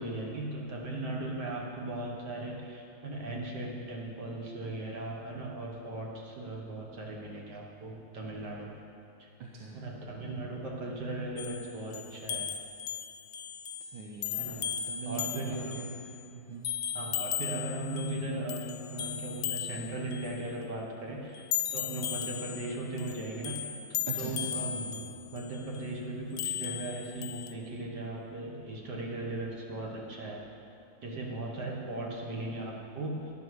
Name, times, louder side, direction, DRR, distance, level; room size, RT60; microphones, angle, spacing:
voice 1, 0.0-8.8 9.2-9.3 9.7-12.5 14.3-14.7 15.1-15.8 16.9-23.6 24.1-30.4 31.0-33.1, right 2 dB, 60° right, -2 dB, 1.9 m, -38 dB
voice 2, 9.4-9.8 13.8-14.4 14.9-16.0 16.3-16.6 24.1-24.5, right 4 dB, 90° right, 0 dB, 1.6 m, -41 dB
sound 1, 11.4-16.2 16.6-18.2 18.5-20.5 21.3-25.8 26.4-27.5, left 10 dB, 75° left, 1.3 m, -36 dB
12.0 x 11.0 x 4.8 m, 2.6 s
omnidirectional pair, 2.1 m